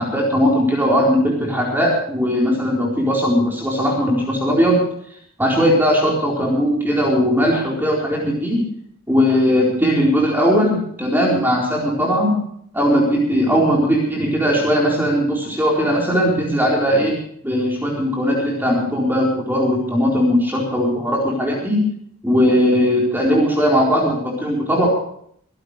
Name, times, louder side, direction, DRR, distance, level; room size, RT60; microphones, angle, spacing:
voice 1, 0.0-4.8 5.4-8.6 9.1-12.4 12.7-17.2 17.4-21.8 22.2-24.9, equal, 10° right, -3 dB, 4.2 m, -18 dB
25.0 x 12.5 x 3.2 m, 0.65 s
head